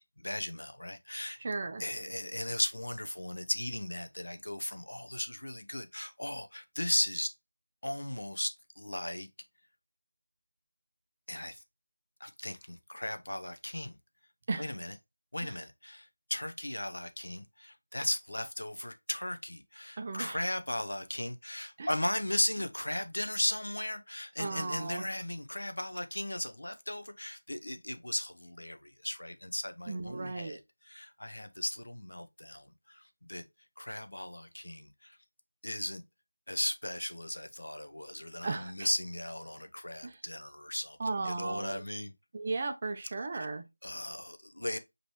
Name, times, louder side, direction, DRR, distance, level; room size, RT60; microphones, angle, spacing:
voice 1, 0.2-1.4 1.8-7.3 7.8-9.3 11.3-11.6 12.2-14.0 14.6-14.9 15.3-30.6 30.8-33.4 33.8-35.2 35.6-36.0 36.5-42.1 43.8-44.8, left 1 dB, 80° left, 0.9 m, -36 dB
voice 2, 1.4-1.8 14.5-14.7 15.4-15.6 20.0-20.4 21.8-21.9 24.4-25.1 29.9-30.6 38.4-38.9 40.0-40.2 41.0-41.8 42.3-43.7, right 3 dB, 20° right, 0.5 m, -36 dB
5.1 x 3.1 x 3.1 m
figure-of-eight pair, 180°, 0 cm